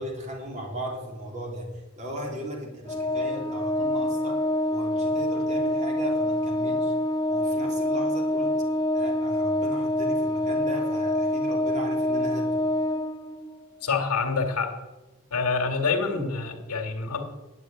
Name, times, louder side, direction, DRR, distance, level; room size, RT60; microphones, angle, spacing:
voice 1, 0.0-4.4 4.7-6.9 7.3-8.6 8.9-12.6, right 1 dB, 30° right, -1 dB, 3.2 m, -36 dB
Organ, 2.9-13.6, left 1 dB, 20° left, 0.6 m, -26 dB
voice 2, 13.8-14.8 15.3-17.2, left 4 dB, 90° left, 4 dB, 1.9 m, -26 dB
9.7 x 7.5 x 8.9 m, 1.1 s
head